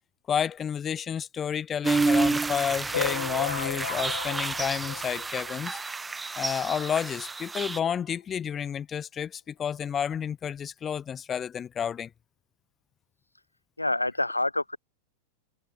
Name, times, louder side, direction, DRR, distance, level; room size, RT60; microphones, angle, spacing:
voice 1, 0.3-5.8 6.4-12.1, left 8 dB, 25° left, 0.5 m, -30 dB
sound 1, 1.8-7.8, right 3 dB, 10° right, 0.8 m, -29 dB
sound 2, 2.9-5.8 6.3-6.4 6.5-6.7 7.0-7.1 7.9-8.0 8.5-8.6, left 8 dB, 65° left, 2.0 m, -34 dB
voice 2, 13.8-14.8, left 2 dB, 85° left, 0.7 m, -27 dB
figure-of-eight pair, 90°, 0 cm